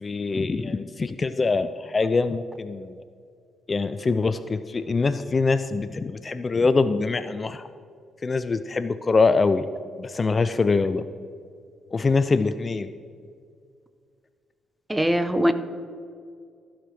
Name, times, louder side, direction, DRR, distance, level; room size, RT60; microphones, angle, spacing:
voice 1, 0.0-3.0 3.7-7.7 8.2-9.7 10.0-11.0 11.9-12.9, left 4 dB, 30° left, 11 dB, 0.4 m, -24 dB
voice 2, 14.9-15.5, equal, 10° right, 11 dB, 0.7 m, -21 dB
14.5 x 5.1 x 6.1 m, 2.2 s
cardioid pair, 90°, 0 cm